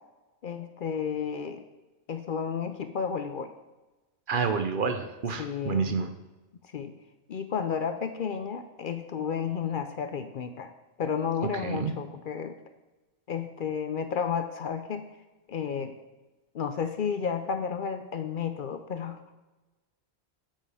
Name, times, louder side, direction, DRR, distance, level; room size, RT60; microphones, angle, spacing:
voice 1, 0.4-1.6 2.1-3.5 5.4-6.0 6.7-6.9 7.3-10.7 11.0-12.6 13.3-15.1 15.5-15.9 16.5-19.3, left 6 dB, 60° left, 8 dB, 0.7 m, -32 dB
voice 2, 4.3-6.1 11.6-11.9, right 5 dB, 55° right, 8 dB, 0.8 m, -29 dB
9.2 x 7.4 x 3.4 m, 1.1 s
omnidirectional pair, 1.1 m